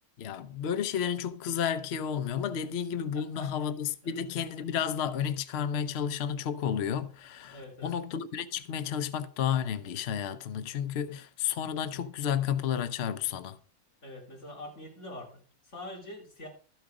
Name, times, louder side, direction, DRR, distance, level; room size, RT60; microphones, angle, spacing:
voice 1, 0.2-13.6, left 8 dB, 80° left, 0.5 m, -32 dB
voice 2, 3.1-3.5 4.0-4.2 7.5-8.0 14.0-16.5, left 1 dB, 40° left, 3.8 m, -45 dB
13.0 x 7.7 x 4.9 m
omnidirectional pair, 2.0 m